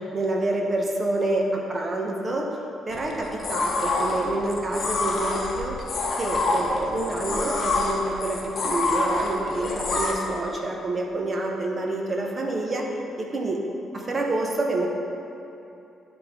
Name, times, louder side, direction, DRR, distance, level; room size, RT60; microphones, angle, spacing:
voice 1, 0.1-2.5 2.9-5.8 6.2-12.8 13.2-13.6 13.9-14.9, right 2 dB, 35° right, 0 dB, 0.9 m, -27 dB
sound 1, 2.9-10.1, left 3 dB, 50° left, 0.8 m, -27 dB
10.0 x 3.5 x 3.6 m, 2.8 s
cardioid pair, 90°, 0 cm